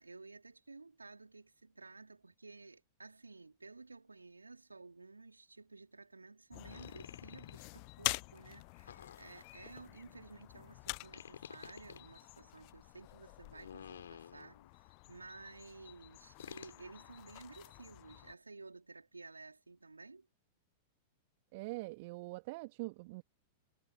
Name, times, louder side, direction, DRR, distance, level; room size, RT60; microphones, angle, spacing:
voice 1, 0.0-20.3, right 3 dB, 80° right, 3.8 m, -54 dB
sound 1, 6.5-18.3, left 40 dB or more, 45° left, 0.6 m, -47 dB
sound 2, 6.7-7.7 8.9-9.7 11.1-12.0 13.5-14.7 16.4-16.8, left 8 dB, 65° left, 4.7 m, -51 dB
voice 2, 21.5-23.2, right 24 dB, 45° right, 1.8 m, -43 dB
figure-of-eight pair, 95°, 0 cm